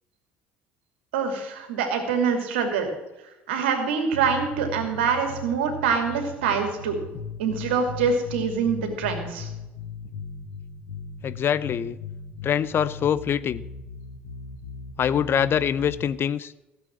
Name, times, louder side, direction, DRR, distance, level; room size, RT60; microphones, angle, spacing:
voice 1, 1.1-2.9 3.5-7.0 7.4-9.5, right 6 dB, 70° right, 5 dB, 2.7 m, -25 dB
sound 1, 4.1-16.1, left 3 dB, 70° left, 2.0 m, -38 dB
voice 2, 11.2-12.0 12.4-13.6 15.0-16.5, left 8 dB, 40° left, 17 dB, 0.6 m, -24 dB
16.0 x 7.9 x 7.4 m, 1.0 s
figure-of-eight pair, 60°, 6 cm